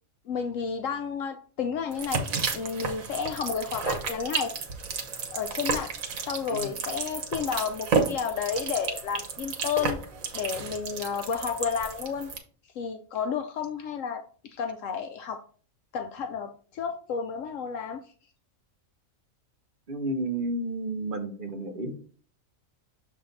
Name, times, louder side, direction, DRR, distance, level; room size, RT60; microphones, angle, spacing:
voice 1, 0.3-2.2 2.5-4.5 5.3-5.9 6.3-10.0 10.3-12.3 12.8-15.4 15.9-18.0, left 6 dB, 75° left, 6 dB, 0.9 m, -31 dB
sound 1, 1.9-12.4, right 5 dB, 85° right, 1.5 m, -32 dB
voice 2, 19.9-21.9, right 2 dB, 40° right, 5 dB, 1.0 m, -31 dB
6.9 x 3.6 x 3.9 m, 0.43 s
omnidirectional pair, 1.4 m